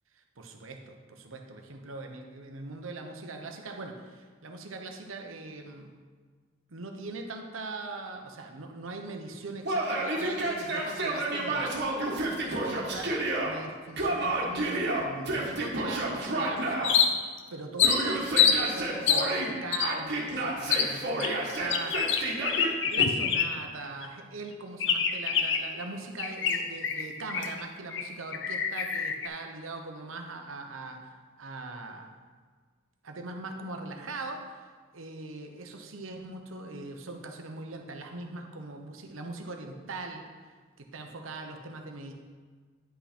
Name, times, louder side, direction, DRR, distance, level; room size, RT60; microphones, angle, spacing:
voice 1, 0.4-5.9 6.7-22.2 22.9-32.1 33.0-34.4 34.9-40.2 40.8-42.1, right 3 dB, 90° right, 3 dB, 1.0 m, -41 dB
Yell, 9.6-13.5 14.0-16.9 17.8-19.5 19.8-22.7, right 2 dB, 55° right, 1.5 m, -30 dB
sound 1, 16.8-17.4 17.8-18.6 19.1-19.3 19.7-19.9 20.7-20.9 21.2-23.7 24.0-24.1 24.8-25.7 26.2-27.6 27.9-28.0 28.3-29.3, left 7 dB, 60° left, 0.6 m, -26 dB
10.0 x 5.8 x 4.3 m, 1.5 s
head